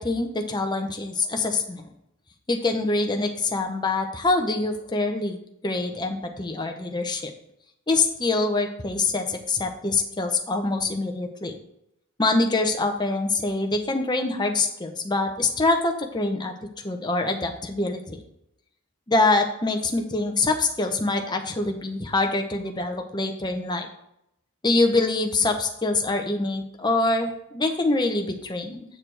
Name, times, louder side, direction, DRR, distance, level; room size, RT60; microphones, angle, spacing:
voice 1, 0.0-1.9 2.5-5.4 5.6-7.3 7.9-11.6 12.2-16.5 16.8-18.2 19.1-23.9 24.6-28.8, left 2 dB, 20° left, 4 dB, 0.7 m, -25 dB
7.7 x 6.5 x 3.3 m, 0.78 s
head